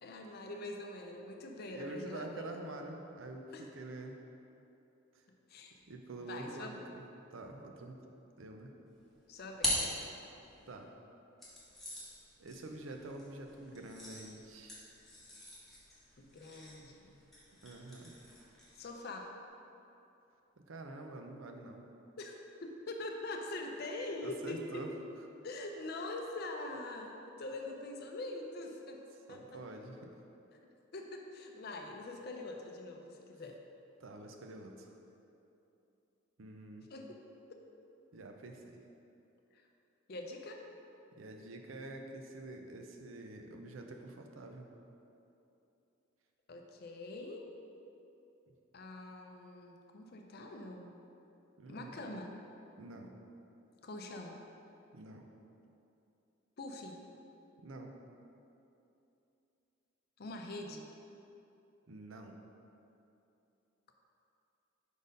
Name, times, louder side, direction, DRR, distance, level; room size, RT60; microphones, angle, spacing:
voice 1, 0.0-2.4 3.5-3.7 5.5-5.7 6.2-6.8 9.3-10.0 16.2-17.2 18.8-19.3 22.2-24.8 25.4-29.0 29.3-29.6 30.5-33.6 36.9-37.1 39.5-39.6 40.1-40.6 46.5-47.5 48.7-51.0 51.7-52.3 53.8-54.4 56.6-57.0 60.2-60.8, left 2 dB, 50° left, 2 dB, 0.5 m, -44 dB
voice 2, 1.7-4.2 5.1-5.2 5.9-7.0 7.3-8.0 8.4-8.7 10.7-10.9 12.4-14.9 17.6-18.1 20.7-21.8 24.2-24.9 29.3-30.1 34.0-34.9 36.4-36.9 38.1-38.8 41.2-44.7 51.6-52.1 52.8-53.1 54.9-55.2 57.6-57.9 61.9-62.4, right 2 dB, 75° right, 3 dB, 0.6 m, -47 dB
sound 1, 8.9-10.7 11.4-19.0, left 1 dB, ahead, 1.1 m, -42 dB
5.0 x 4.3 x 5.2 m, 2.8 s
head